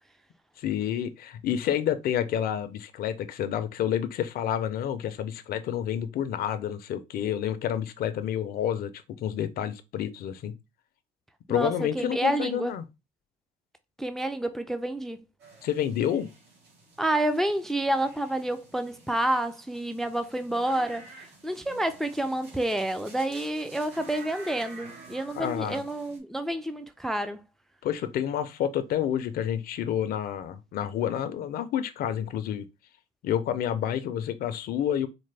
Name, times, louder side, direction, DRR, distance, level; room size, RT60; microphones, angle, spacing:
voice 1, 0.6-8.9 9.2-10.5 11.5-12.9 15.6-16.3 25.3-25.8 27.8-32.7 33.2-35.1, left 10 dB, 60° left, 0.5 m, -29 dB
voice 2, 11.5-12.7 14.0-15.2 17.0-27.4, right 1 dB, ahead, 0.3 m, -29 dB
sound 1, 15.4-26.2, right 3 dB, 90° right, 1.7 m, -50 dB
4.2 x 2.1 x 3.2 m
cardioid pair, 110°, 17 cm